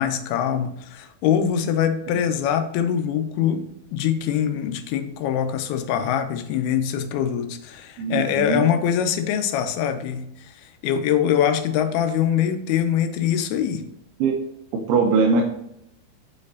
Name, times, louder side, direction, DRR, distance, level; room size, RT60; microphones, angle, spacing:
voice 1, 0.0-3.6 3.9-13.8, left 9 dB, 85° left, 8 dB, 2.6 m, -23 dB
voice 2, 8.0-8.6 14.2-14.3 14.9-15.4, right 4 dB, 90° right, 0 dB, 2.8 m, -20 dB
7.4 x 5.2 x 2.7 m, 0.78 s
omnidirectional pair, 4.5 m